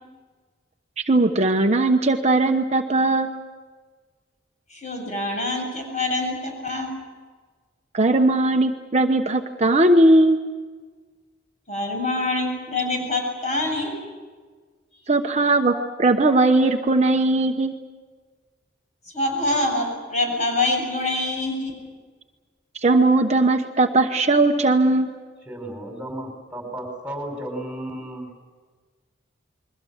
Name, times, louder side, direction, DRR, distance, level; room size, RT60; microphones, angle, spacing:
voice 1, 1.1-3.3 7.9-10.4 15.1-15.7 16.0-17.7 22.8-25.1, right 2 dB, 35° right, 4 dB, 1.0 m, -18 dB
voice 2, 4.7-6.9 11.7-14.0 19.1-21.7, left 2 dB, 40° left, 2 dB, 7.7 m, -25 dB
voice 3, 25.4-28.3, right 1 dB, 5° right, 2 dB, 5.3 m, -33 dB
29.0 x 22.5 x 7.3 m, 1.5 s
head